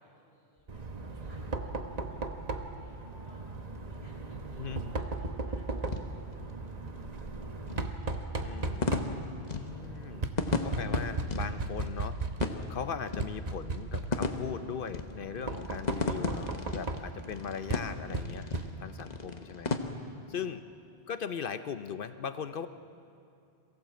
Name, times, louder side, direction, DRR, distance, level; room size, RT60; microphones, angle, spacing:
voice 1, 0.0-3.4 3.9-6.1 20.3-20.6, right 1 dB, 70° right, -3 dB, 5.1 m, -62 dB
sound 1, 0.6-18.0, equal, 5° right, 3.8 m, -61 dB
Knock, 0.7-19.1, right 2 dB, 40° right, 1.1 m, -37 dB
sound 2, 2.7-19.8, left 3 dB, 40° left, 1.2 m, -37 dB
voice 2, 8.4-10.3 10.6-12.2 12.7-18.5 18.8-19.7 20.3-20.6 21.1-22.7, left 7 dB, 60° left, 11 dB, 0.8 m, -39 dB
22.5 x 15.5 x 7.6 m, 2.5 s
omnidirectional pair, 1.1 m